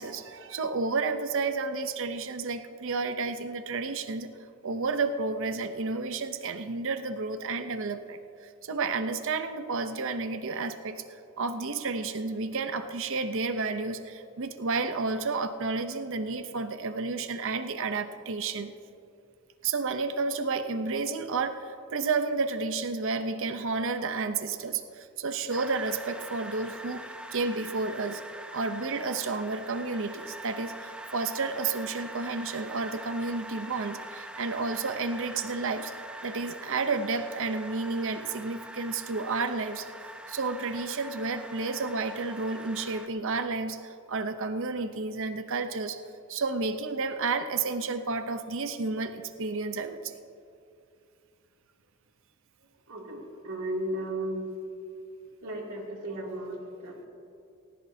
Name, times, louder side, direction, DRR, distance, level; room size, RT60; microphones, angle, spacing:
voice 1, 0.0-4.3 4.6-18.7 19.6-27.0 27.3-28.2 28.5-35.9 36.2-39.9 40.3-46.0 46.3-50.2, right 4 dB, 60° right, 9 dB, 0.7 m, -31 dB
sound 1, 25.5-43.1, right 1 dB, 5° right, 0.7 m, -43 dB
voice 2, 52.6-54.4 55.4-57.1, right 1 dB, 75° right, -2 dB, 2.7 m, -35 dB
18.5 x 18.0 x 2.8 m, 2.5 s
head